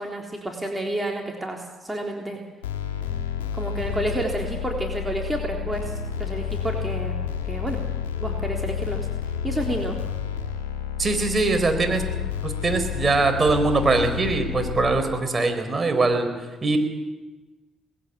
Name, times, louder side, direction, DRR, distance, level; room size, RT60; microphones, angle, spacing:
voice 1, 0.0-2.4 3.5-7.1 7.5-7.8 8.2-9.1 9.4-10.0, right 1 dB, 15° right, 0 dB, 3.7 m, -30 dB
sound 1, 2.6-15.0, left 8 dB, 85° left, 1.7 m, -30 dB
voice 2, 11.0-12.0 12.4-16.3 16.6-16.8, right 3 dB, 35° right, 6 dB, 4.6 m, -22 dB
20.0 x 15.5 x 8.4 m, 1.2 s
hypercardioid pair, 50°, 0 cm